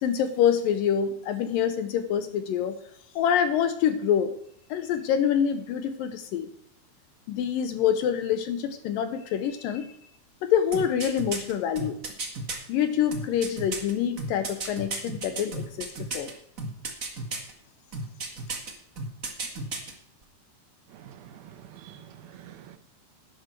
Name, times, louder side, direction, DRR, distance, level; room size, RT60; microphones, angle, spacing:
voice 1, 0.0-2.8 3.2-4.3 4.7-6.5 7.3-9.9 10.4-12.0 12.7-16.3, left 8 dB, 75° left, 2.2 m, -26 dB
sound 1, 10.7-12.6 13.1-16.3 16.6-17.5 17.9-18.7 19.0-19.9 20.2-20.3, right 3 dB, 40° right, 1.2 m, -33 dB
voice 2, 20.9-22.8, right 10 dB, 75° right, 2.8 m, -47 dB
11.5 x 10.5 x 4.6 m
omnidirectional pair, 4.5 m